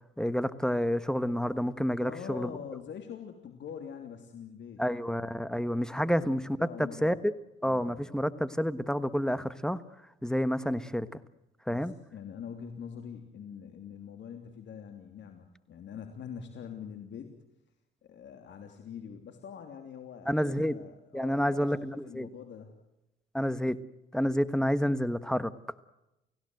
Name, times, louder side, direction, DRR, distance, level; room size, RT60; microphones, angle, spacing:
voice 1, 0.0-2.5 4.8-7.1 7.6-9.8 10.2-11.1 11.7-11.9 20.3-20.7 21.1-22.3 23.3-23.8 24.1-25.5, equal, 5° left, 14 dB, 1.4 m, -29 dB
voice 2, 2.0-4.8 6.1-7.3 7.6-8.1 11.7-17.3 18.0-22.7, left 7 dB, 65° left, 5 dB, 3.1 m, -44 dB
30.0 x 16.5 x 7.9 m, 0.92 s
cardioid pair, 90°, 20 cm